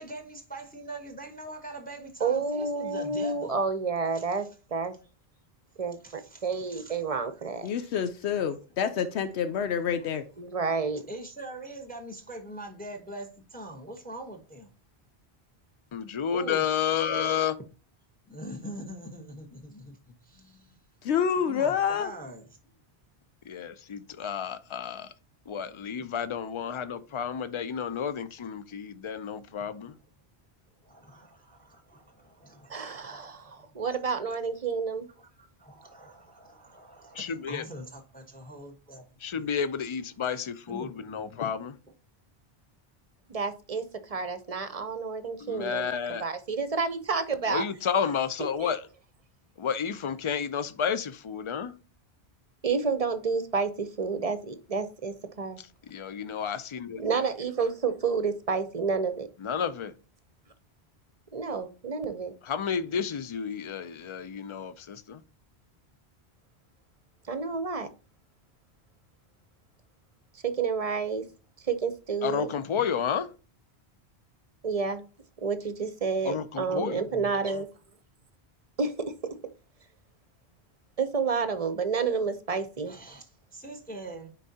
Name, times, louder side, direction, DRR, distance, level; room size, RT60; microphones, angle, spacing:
voice 1, 0.0-3.5 4.1-4.3 6.0-7.0 7.7-7.9 10.6-10.7 11.1-14.7 16.3-16.6 18.3-20.8 21.4-22.5 30.8-33.3 34.3-34.4 35.2-39.0 39.3-39.5 40.7-41.5 76.6-77.5 82.8-84.3, right 1 dB, 10° left, 1.0 m, -43 dB
voice 2, 2.2-4.5 4.7-4.9 5.8-7.7 10.4-11.0 32.7-35.1 43.3-45.9 46.2-47.6 52.6-55.6 57.0-59.3 61.3-62.3 67.3-67.9 70.4-71.2 71.7-72.5 74.6-75.0 75.4-77.7 78.8-78.9 81.0-82.9, right 5 dB, 40° right, 0.7 m, -29 dB
voice 3, 7.6-10.2 21.0-22.1, left 7 dB, 85° left, 0.9 m, -27 dB
voice 4, 15.9-17.6 23.4-25.1 25.5-29.9 37.1-37.7 39.2-41.8 45.4-46.2 47.5-48.8 49.6-51.7 55.6-57.0 59.4-59.9 62.4-65.2 72.2-73.3 76.2-77.0, left 7 dB, 45° left, 0.4 m, -31 dB
9.9 x 3.9 x 2.8 m
omnidirectional pair, 1.1 m